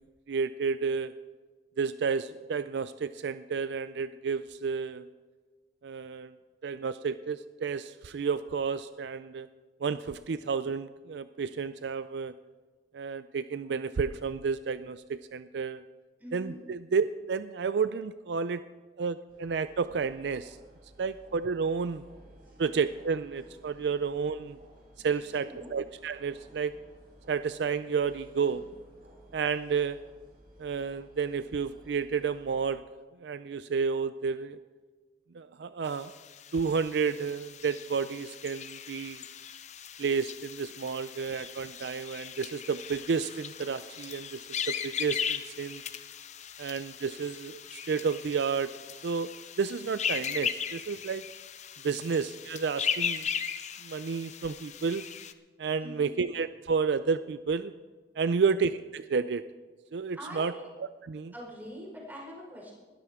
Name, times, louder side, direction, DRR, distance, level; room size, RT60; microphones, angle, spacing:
voice 1, 0.3-1.1 1.8-5.1 5.8-6.3 6.6-9.5 9.8-12.3 12.9-15.8 16.3-18.6 19.0-20.6 21.0-22.0 22.6-24.6 25.0-26.7 27.3-28.6 29.3-30.0 30.6-32.8 33.2-34.6 35.3-36.1 36.5-39.2 40.0-44.4 44.7-45.8 46.6-48.7 49.0-49.3 49.6-51.3 51.8-53.3 53.8-55.1 55.6-57.7 58.2-59.4 59.9-60.5 61.1-61.3, right 5 dB, 70° right, 13 dB, 0.4 m, -31 dB
voice 2, 16.2-16.6 22.5-22.6 25.1-25.7 55.8-56.2 60.1-60.7 61.3-62.7, equal, 10° right, -3 dB, 4.7 m, -44 dB
sound 1, 19.3-32.7, right 1 dB, 55° right, 5.0 m, -56 dB
sound 2, 35.9-55.3, left 7 dB, 40° left, 0.7 m, -38 dB
20.5 x 13.0 x 3.7 m, 1.4 s
head